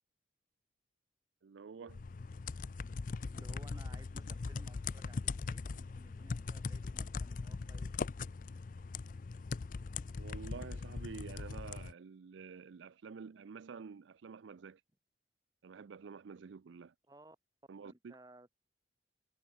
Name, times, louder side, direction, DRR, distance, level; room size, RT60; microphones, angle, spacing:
voice 1, 1.4-2.0 10.2-14.8 15.6-16.9 17.7-18.2, right 5 dB, 75° right, 0.4 m, -49 dB
sound 1, 1.9-11.9, left 4 dB, 45° left, 0.4 m, -40 dB
voice 2, 3.2-8.1 17.1-17.4 17.8-18.5, right 1 dB, 20° right, 1.5 m, -59 dB
head